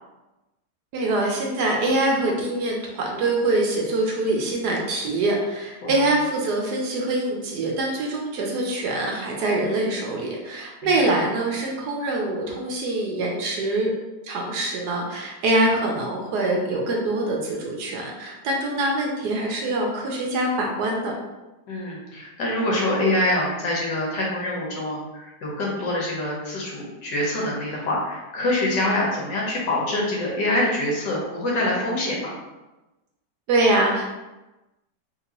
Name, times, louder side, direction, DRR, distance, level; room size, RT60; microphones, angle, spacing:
voice 1, 0.9-13.9 14.2-21.1 33.5-34.1, right 2 dB, 70° right, 0 dB, 1.1 m, -24 dB
voice 2, 21.7-32.4, left 1 dB, 75° left, -3 dB, 1.6 m, -25 dB
3.6 x 2.8 x 2.8 m, 1.0 s
omnidirectional pair, 1.9 m